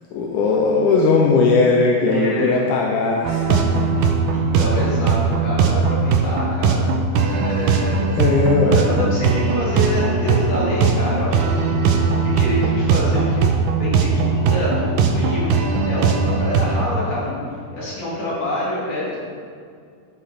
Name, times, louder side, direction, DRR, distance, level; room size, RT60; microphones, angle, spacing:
voice 1, 0.1-4.1 7.5-7.9 8.2-8.8, left 4 dB, 75° left, -1 dB, 1.9 m, -19 dB
voice 2, 2.0-2.6 4.3-6.9 7.2-8.3 8.7-13.4 13.8-17.4 17.7-19.2, left 1 dB, 35° left, -7 dB, 3.2 m, -26 dB
sound 1, 3.2-16.9, right 4 dB, 80° right, 1.9 m, -19 dB
11.5 x 6.4 x 4.3 m, 2.2 s
omnidirectional pair, 4.3 m